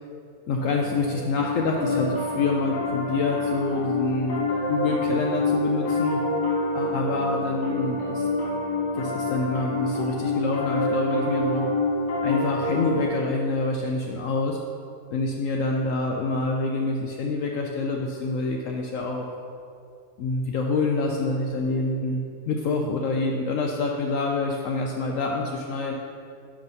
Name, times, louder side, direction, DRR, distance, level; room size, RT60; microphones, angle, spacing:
voice 1, 0.5-6.2 6.7-8.3 8.9-11.7 12.2-14.6 15.1-19.3 20.2-25.9, left 3 dB, 70° left, 1 dB, 0.8 m, -27 dB
Piano, 0.6-13.1, left 2 dB, 85° left, 1.7 m, -27 dB
5.3 x 5.1 x 5.4 m, 2.4 s
omnidirectional pair, 1.7 m